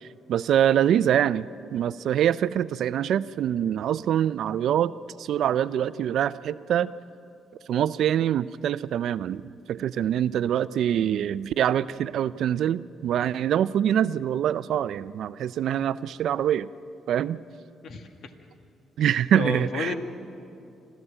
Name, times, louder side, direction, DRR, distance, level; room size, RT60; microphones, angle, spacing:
voice 1, 0.0-4.9 5.2-6.9 7.7-9.4 9.7-16.7 17.1-17.4 19.0-20.0, right 10 dB, 70° right, 16 dB, 0.5 m, -24 dB
voice 2, 17.8-18.3 19.0-20.0, left 4 dB, 65° left, 6 dB, 1.8 m, -33 dB
25.5 x 14.0 x 8.9 m, 2.6 s
cardioid pair, 90°, 0 cm